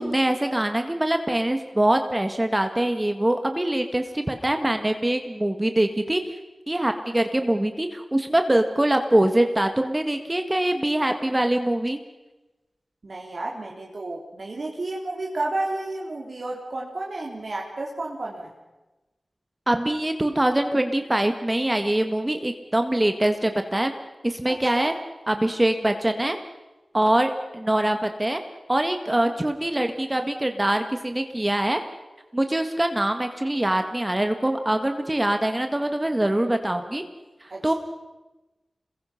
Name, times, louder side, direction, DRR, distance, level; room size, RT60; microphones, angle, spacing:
voice 1, 0.0-6.3 6.7-12.0 19.7-23.9 24.2-24.9 25.3-26.4 26.9-28.4 28.7-31.8 32.3-37.0 37.4-37.7, right 1 dB, 20° right, 6 dB, 1.7 m, -23 dB
voice 2, 13.0-18.5 24.5-24.9 29.1-29.3 37.5-37.8, right 2 dB, 65° right, -1 dB, 3.4 m, -32 dB
27.5 x 22.0 x 5.9 m, 1.1 s
cardioid pair, 55°, 0 cm